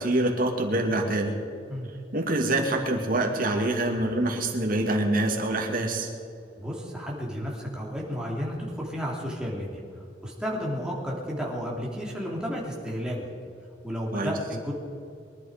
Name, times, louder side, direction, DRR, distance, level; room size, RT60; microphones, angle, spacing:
voice 1, 0.0-1.3 2.1-6.1 14.1-14.3, right 1 dB, 50° right, 1 dB, 2.4 m, -25 dB
voice 2, 6.6-9.8 10.2-13.3 13.8-14.7, equal, 5° right, -3 dB, 3.1 m, -32 dB
23.0 x 11.5 x 5.2 m, 2.5 s
head